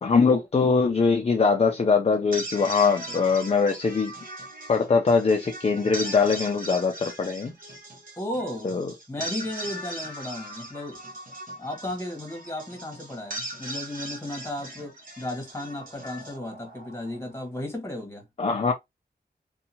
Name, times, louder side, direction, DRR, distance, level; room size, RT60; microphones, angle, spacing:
voice 1, 0.0-4.1 4.7-7.5 8.6-8.9 18.4-18.7, left 4 dB, 35° left, 0.4 m, -22 dB
sound 1, 2.1-17.4, right 1 dB, 55° right, 1.1 m, -39 dB
voice 2, 8.2-8.7 9.1-11.0 11.6-18.2, left 1 dB, 15° left, 1.2 m, -34 dB
2.7 x 2.3 x 2.7 m
wide cardioid pair, 90°, 18 cm